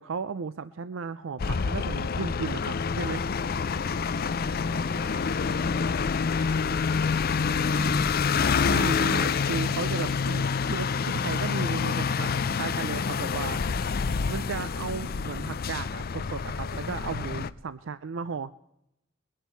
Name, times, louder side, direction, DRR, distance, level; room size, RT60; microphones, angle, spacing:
voice 1, 0.0-3.2 8.6-13.6 14.3-18.5, right 5 dB, 90° right, 14 dB, 0.5 m, -35 dB
sound 1, 1.4-17.5, left 5 dB, 50° left, 0.5 m, -27 dB
voice 2, 4.2-5.8 6.7-7.8, right 1 dB, 50° right, -4 dB, 7.8 m, -49 dB
21.5 x 11.0 x 4.6 m, 0.83 s
head